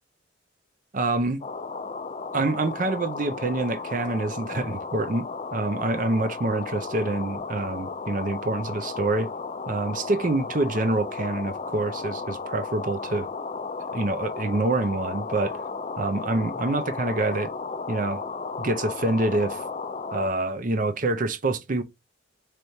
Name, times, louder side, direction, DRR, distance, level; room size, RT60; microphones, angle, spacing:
voice 1, 0.9-1.4 2.3-9.3 9.7-13.3 13.9-15.6 16.0-17.5 17.9-18.2 18.6-19.6 20.1-21.8, right 2 dB, 40° right, 0.5 m, -26 dB
sound 1, 1.4-20.3, left 4 dB, 30° left, 0.4 m, -34 dB
4.4 x 3.3 x 2.7 m
head